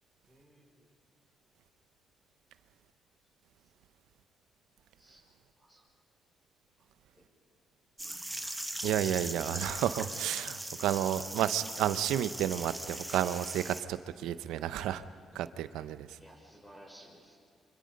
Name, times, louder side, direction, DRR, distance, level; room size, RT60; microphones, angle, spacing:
voice 1, 0.3-0.8 5.0-5.2 5.6-5.8 6.8-6.9 7.1-7.3 16.2-17.3, equal, 15° left, -2 dB, 5.2 m, -56 dB
sound 1, 8.0-13.8, right 1 dB, 10° right, 1.3 m, -40 dB
voice 2, 8.8-15.0 15.3-16.2, right 11 dB, 90° right, 13 dB, 0.8 m, -31 dB
26.0 x 25.5 x 5.4 m, 2.3 s
cardioid pair, 90°, 0 cm